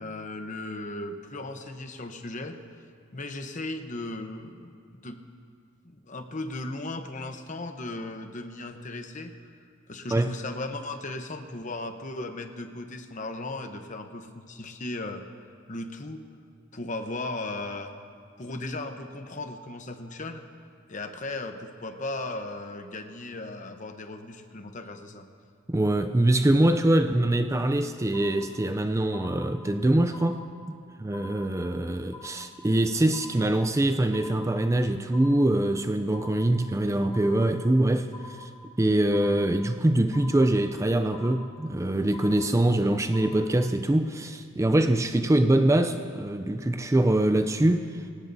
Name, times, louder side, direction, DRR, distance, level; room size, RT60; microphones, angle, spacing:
voice 1, 0.0-2.6 3.1-4.8 5.0-5.2 5.8-9.3 9.9-15.2 15.7-16.2 16.7-17.9 18.4-20.4 20.9-25.3, left 2 dB, 40° left, 0.9 m, -36 dB
voice 2, 25.7-30.4 30.7-38.5 38.8-48.1, right 1 dB, 15° right, 0.4 m, -24 dB
sound 1, 28.1-28.8 29.1-29.8 30.1-30.8 31.1-31.8 32.1-32.8 33.1-33.8 34.1-34.8 35.1-35.8 36.1-36.8 37.1-37.8 38.1-38.8 39.1-39.8 40.1-40.8 41.1-41.8 42.1-42.8 43.1-43.4, left 3 dB, 15° left, 1.3 m, -46 dB
24.5 x 18.0 x 2.7 m
head